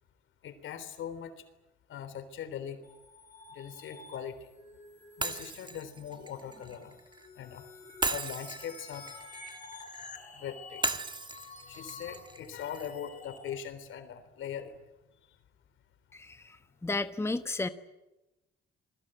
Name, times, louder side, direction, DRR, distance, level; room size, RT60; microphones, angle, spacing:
voice 1, 0.4-1.3 1.9-2.8 3.5-4.5 5.2-7.0 7.4-7.6 8.1-9.1 10.3-10.8 11.7-14.7, left 9 dB, 80° left, 10 dB, 3.7 m, -41 dB
sound 1, 2.8-13.5, left 3 dB, 35° left, 7.4 m, -50 dB
Shatter, 5.2-7.3 8.0-10.1 10.8-12.9, right 3 dB, 25° right, 1.6 m, -37 dB
voice 2, 16.1-16.4 16.8-17.7, left 2 dB, 15° left, 10 dB, 1.2 m, -32 dB
28.5 x 21.0 x 9.1 m, 1.0 s
cardioid pair, 90°, 20 cm